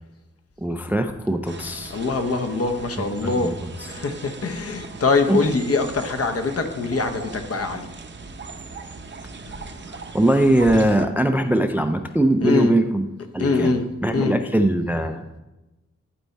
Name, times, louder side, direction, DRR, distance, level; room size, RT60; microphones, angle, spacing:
voice 1, 0.6-2.0 3.2-3.5 5.3-5.4 9.9-13.1 13.3-13.7 14.0-15.4, right 1 dB, 5° right, 8 dB, 0.3 m, -21 dB
sound 1, 1.5-11.0, right 4 dB, 40° right, 0.6 m, -39 dB
voice 2, 1.9-3.5 3.9-7.9 12.4-12.7 13.4-13.9 14.1-14.3, left 3 dB, 55° left, 7 dB, 0.9 m, -23 dB
11.5 x 4.5 x 4.1 m, 1.0 s
wide cardioid pair, 165°, 29 cm